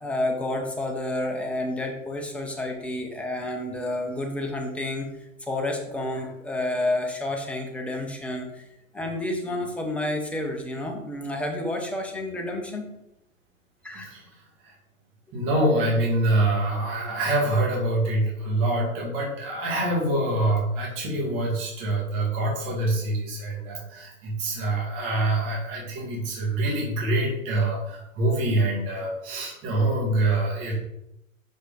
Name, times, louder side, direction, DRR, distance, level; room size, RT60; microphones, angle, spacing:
voice 1, 0.0-5.1 5.5-8.6 8.9-12.8 13.8-14.1, left 1 dB, 5° left, 1 dB, 0.4 m, -30 dB
voice 2, 13.9-14.3 14.6-14.7 15.3-30.7, right 2 dB, 30° right, -3 dB, 2.2 m, -25 dB
6.3 x 5.0 x 3.8 m, 0.86 s
figure-of-eight pair, 115°, 40 cm